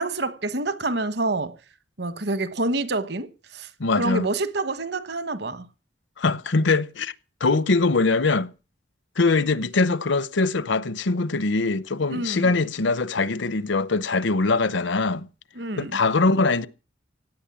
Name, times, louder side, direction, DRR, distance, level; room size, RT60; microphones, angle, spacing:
voice 1, 0.0-1.6 2.0-3.7 3.9-5.7 12.1-12.5 15.5-16.0, right 2 dB, 60° right, 1.2 m, -27 dB
voice 2, 3.8-4.3 6.2-7.1 7.4-8.5 9.2-15.3 15.8-16.7, left 3 dB, 80° left, 0.8 m, -22 dB
17.0 x 9.1 x 7.2 m
head